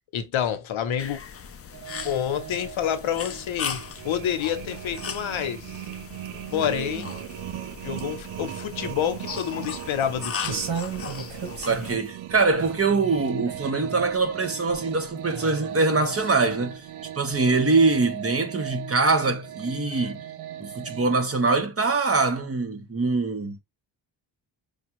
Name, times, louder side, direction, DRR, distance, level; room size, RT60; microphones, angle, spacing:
voice 1, 0.1-1.2 2.0-5.8 6.5-7.1 7.8-10.7, left 9 dB, 80° left, 0.9 m, -28 dB
sound 1, 1.0-12.0, left 6 dB, 30° left, 0.4 m, -38 dB
sound 2, 1.7-21.3, right 12 dB, 90° right, 0.6 m, -38 dB
voice 2, 6.5-7.0 11.6-16.8 17.1-20.2 20.6-23.6, right 3 dB, 30° right, 1.0 m, -23 dB
sound 3, 10.4-12.1 12.5-14.1 14.7-14.8 15.3-16.6 17.3-17.4, right 5 dB, 70° right, 1.4 m, -36 dB
5.0 x 2.3 x 3.0 m
cardioid pair, 80°, 47 cm